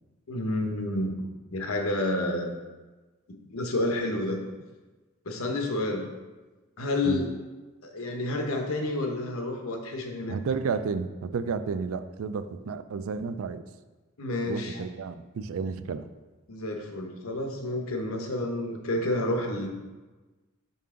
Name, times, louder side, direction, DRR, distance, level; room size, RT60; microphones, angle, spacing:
voice 1, 0.3-1.2 1.5-2.5 3.5-4.4 5.2-6.1 6.8-7.4 7.8-10.4 14.2-14.8 16.5-19.7, left 1 dB, 85° left, 3 dB, 0.9 m, -29 dB
voice 2, 10.3-13.6 14.5-16.1, right 5 dB, 80° right, 11 dB, 0.4 m, -32 dB
5.6 x 5.4 x 3.7 m, 1.2 s
head